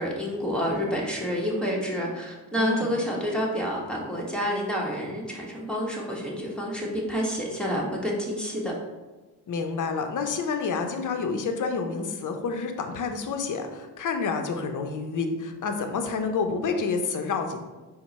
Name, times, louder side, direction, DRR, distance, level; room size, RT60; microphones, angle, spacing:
voice 1, 0.0-8.7, equal, ahead, -3 dB, 1.1 m, -29 dB
voice 2, 2.6-2.9 9.5-17.6, left 4 dB, 45° left, 5 dB, 0.7 m, -29 dB
4.3 x 2.2 x 4.1 m, 1.2 s
supercardioid pair, 55°, 44 cm